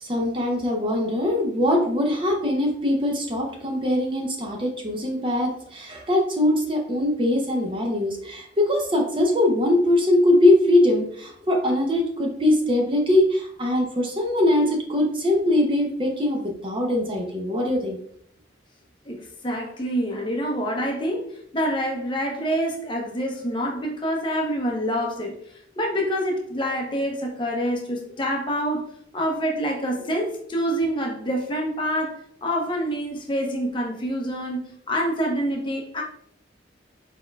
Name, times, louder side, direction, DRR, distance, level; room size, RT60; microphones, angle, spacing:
voice 1, 0.0-18.0, left 1 dB, 25° right, 1 dB, 0.6 m, -22 dB
voice 2, 19.0-25.4 25.8-28.8 29.1-36.0, equal, 25° left, 0 dB, 0.7 m, -26 dB
4.5 x 4.2 x 2.3 m, 0.67 s
head